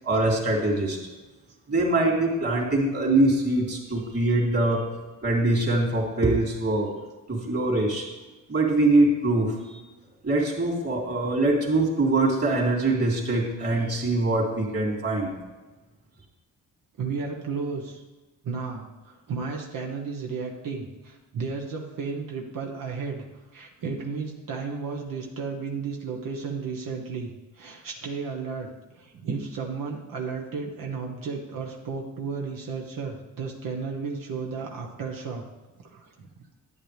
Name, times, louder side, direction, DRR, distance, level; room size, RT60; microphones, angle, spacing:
voice 1, 0.0-1.0 1.7-4.9 5.2-6.9 7.3-8.1 8.5-9.8 10.2-15.3, right 2 dB, 45° right, -1 dB, 3.2 m, -23 dB
voice 2, 17.0-18.0 18.4-23.2 23.5-35.4 35.8-36.5, right 5 dB, 80° right, 0 dB, 1.4 m, -33 dB
11.0 x 9.3 x 3.5 m, 1.2 s
cardioid pair, 95°, 33 cm